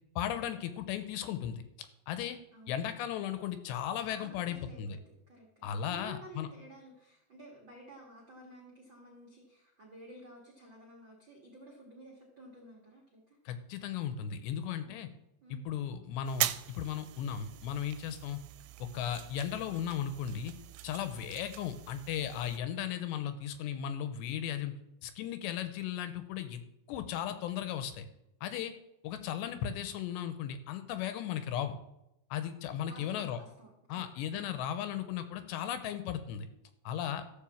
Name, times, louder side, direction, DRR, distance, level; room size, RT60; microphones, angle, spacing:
voice 1, 0.2-1.6 2.1-2.4 2.7-5.0 5.6-6.5 13.5-15.1 15.5-18.4 18.8-20.5 20.8-24.7 25.0-26.6 26.9-28.1 28.4-28.7 29.0-31.8 32.3-33.4 33.9-36.5 36.8-37.2, left 9 dB, 80° left, 10 dB, 2.9 m, -36 dB
voice 2, 4.1-13.4 14.8-15.1 15.4-15.6 32.8-34.0 34.3-34.5, equal, 60° right, -3 dB, 1.2 m, -53 dB
sound 1, 16.3-22.6, right 15 dB, 85° right, 2.8 m, -41 dB
13.5 x 5.5 x 7.1 m, 0.86 s
omnidirectional pair, 5.2 m